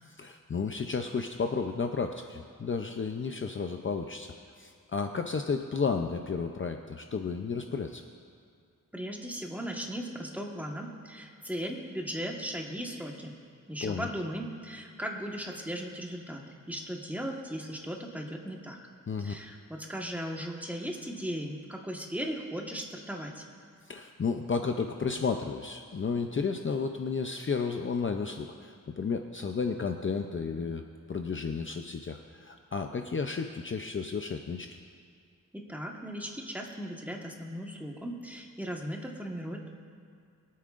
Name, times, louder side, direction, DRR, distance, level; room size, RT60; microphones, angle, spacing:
voice 1, 0.2-8.0 13.8-14.1 19.1-19.4 23.9-30.8 31.1-34.7, left 5 dB, 35° left, 5 dB, 0.6 m, -32 dB
voice 2, 8.9-13.3 13.7-18.8 19.2-23.4 35.5-39.7, equal, 5° right, 0 dB, 1.4 m, -37 dB
23.0 x 8.5 x 2.5 m, 2.3 s
wide cardioid pair, 80°, 33 cm